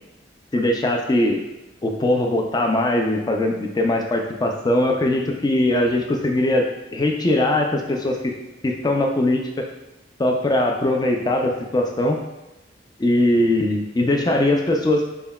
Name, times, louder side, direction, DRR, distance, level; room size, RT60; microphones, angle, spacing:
voice 1, 0.5-1.4 1.8-8.2 8.6-9.7 10.2-12.2 13.0-15.0, left 1 dB, 20° left, 2 dB, 0.4 m, -20 dB
5.3 x 2.2 x 2.2 m, 1.0 s
head